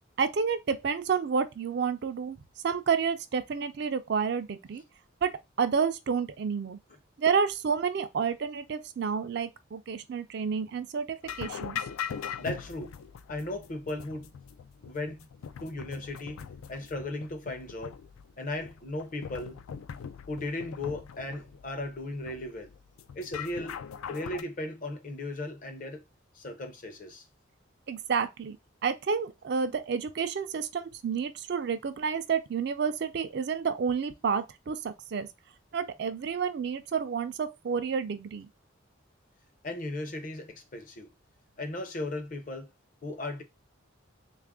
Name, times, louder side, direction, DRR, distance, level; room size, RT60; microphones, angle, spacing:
voice 1, 0.2-2.4 2.6-4.8 5.2-5.3 5.6-6.8 7.2-11.8 27.9-28.6 28.8-35.3 35.7-38.5, right 6 dB, 55° right, 0.4 m, -30 dB
sound 1, 11.2-24.4, left 7 dB, 90° left, 0.3 m, -41 dB
voice 2, 12.4-12.9 13.3-14.3 14.8-15.3 15.6-18.0 18.4-19.6 20.3-22.7 23.1-23.8 24.1-26.0 26.3-27.2 39.6-41.1 41.6-42.7 43.0-43.4, left 2 dB, 40° left, 0.6 m, -36 dB
3.2 x 2.4 x 3.5 m
head